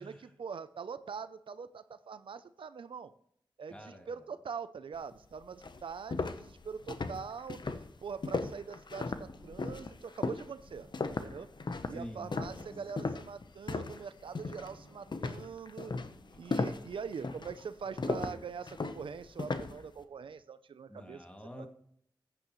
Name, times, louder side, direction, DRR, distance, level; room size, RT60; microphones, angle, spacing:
voice 1, 0.0-3.1 3.6-10.9 11.2-11.5 11.9-15.9 16.4-21.2 21.6-21.7, right 6 dB, 85° right, 13 dB, 0.5 m, -43 dB
voice 2, 3.7-4.2 11.9-12.7 20.9-21.7, equal, 15° left, 3 dB, 2.3 m, -47 dB
sound 1, 5.1-5.2 5.6-14.1 14.3-14.7 15.1-19.8, left 3 dB, 60° left, 0.9 m, -36 dB
sound 2, 9.0-9.9 10.4-13.6 14.1-15.4 15.7-17.7 18.2-20.3, equal, 90° left, 3.0 m, -60 dB
14.0 x 9.0 x 3.1 m, 0.68 s
cardioid pair, 40°, 9 cm